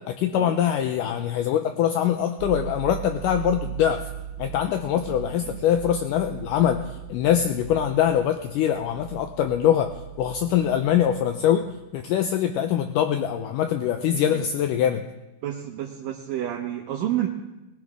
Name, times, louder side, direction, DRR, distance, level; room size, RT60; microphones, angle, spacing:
voice 1, 0.0-4.0 4.4-6.8 7.1-11.7 11.9-15.0, left 10 dB, 80° left, 6 dB, 2.0 m, -23 dB
sound 1, 2.4-11.4 11.7-11.9, right 10 dB, 90° right, 1.7 m, -38 dB
voice 2, 14.1-14.4 15.4-17.3, right 12 dB, 75° right, 0 dB, 2.6 m, -30 dB
20.5 x 16.0 x 3.6 m, 1.0 s
omnidirectional pair, 4.2 m